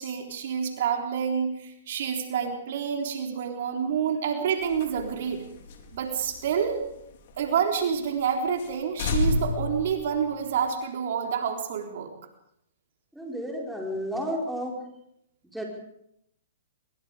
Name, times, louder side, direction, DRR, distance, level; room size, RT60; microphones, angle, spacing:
voice 1, 0.0-5.4 5.9-6.9 7.4-12.1, right 7 dB, 60° right, 3 dB, 3.8 m, -28 dB
sound 1, 4.6-7.5 7.8-7.9 8.2-8.3 8.6-8.7 9.0-10.7, left 3 dB, 55° left, 4.2 m, -31 dB
voice 2, 13.1-14.8 15.5-15.6, equal, ahead, -1 dB, 5.1 m, -32 dB
23.5 x 22.0 x 5.1 m, 0.76 s
hypercardioid pair, 135°, 0 cm